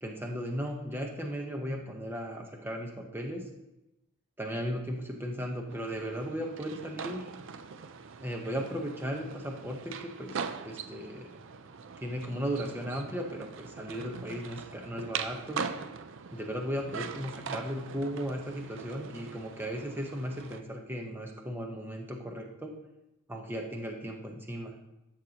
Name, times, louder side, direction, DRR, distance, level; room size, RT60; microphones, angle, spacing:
voice 1, 0.0-3.4 4.4-7.3 8.2-11.4 12.0-15.7 16.3-22.7 23.3-24.7, equal, 10° right, 1 dB, 0.9 m, -36 dB
sound 1, 5.7-20.6, right 6 dB, 55° right, 0.4 m, -42 dB
11.5 x 6.5 x 2.9 m, 0.94 s
head